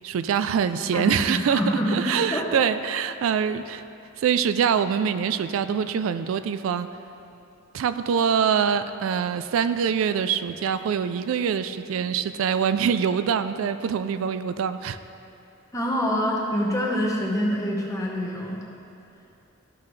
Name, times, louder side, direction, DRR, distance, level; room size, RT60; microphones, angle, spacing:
voice 1, 0.0-3.8 4.2-6.9 7.7-15.0, right 7 dB, 85° right, 12 dB, 0.3 m, -24 dB
voice 2, 0.9-2.0 2.3-2.5 15.7-18.6, equal, 15° left, -2 dB, 1.0 m, -26 dB
13.0 x 5.7 x 3.2 m, 2.7 s
head